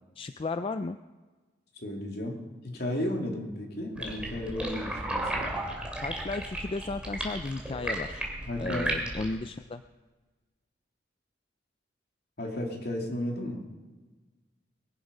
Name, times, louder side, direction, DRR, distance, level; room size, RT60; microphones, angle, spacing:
voice 1, 0.2-1.0 5.9-8.3 8.6-9.8, left 3 dB, 30° left, 10 dB, 0.4 m, -34 dB
voice 2, 1.7-5.6 8.4-8.8 12.4-13.6, left 1 dB, 55° left, 0 dB, 2.9 m, -34 dB
sound 1, 3.9-9.3, right 1 dB, 5° right, 2.7 m, -34 dB
22.0 x 10.5 x 5.4 m, 1.3 s
head